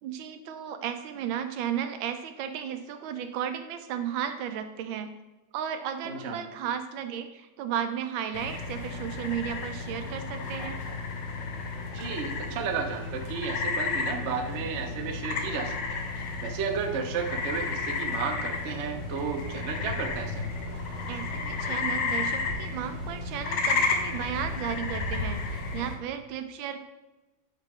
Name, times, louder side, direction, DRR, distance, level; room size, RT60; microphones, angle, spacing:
voice 1, 0.0-5.1 5.5-10.8 21.1-26.8, right 9 dB, 85° right, 9 dB, 1.4 m, -34 dB
voice 2, 6.0-6.4 11.9-20.5, right 6 dB, 65° right, 4 dB, 0.6 m, -33 dB
sound 1, 8.3-25.9, left 4 dB, 70° left, 1.4 m, -32 dB
sound 2, 8.5-26.0, right 2 dB, 50° right, 1.0 m, -48 dB
9.1 x 3.3 x 3.6 m, 1.1 s
omnidirectional pair, 2.1 m